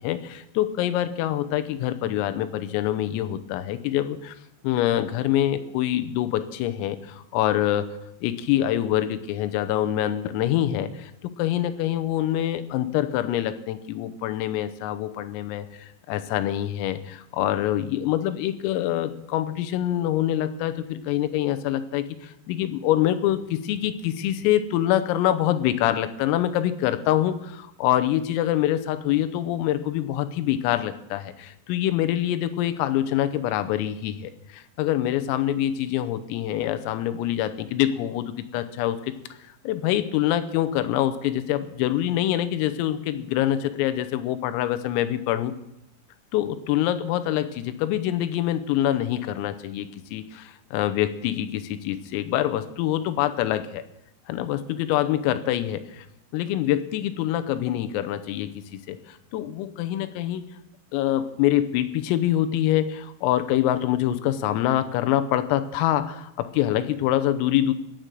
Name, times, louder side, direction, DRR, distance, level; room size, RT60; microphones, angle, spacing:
voice 1, 0.0-4.4 4.6-7.9 8.2-39.1 39.6-45.5 46.3-53.8 54.3-56.1 56.3-60.4 60.9-67.7, left 12 dB, 90° left, 10 dB, 3.5 m, -25 dB
19.0 x 6.7 x 7.6 m, 0.82 s
omnidirectional pair, 6.0 m